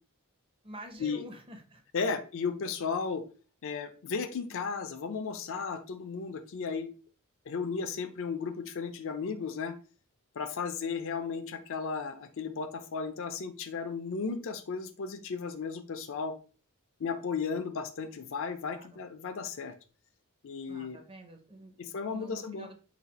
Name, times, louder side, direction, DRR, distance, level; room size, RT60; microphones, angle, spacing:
voice 1, 0.6-1.8 18.7-19.0 20.7-21.8 22.1-22.7, right 1 dB, 25° right, 4 dB, 0.7 m, -48 dB
voice 2, 1.9-3.2 3.6-6.9 7.5-9.7 10.4-16.3 17.0-19.7 20.4-21.0 21.8-22.7, left 5 dB, 60° left, 7 dB, 0.5 m, -35 dB
4.1 x 2.4 x 4.1 m, 0.38 s
head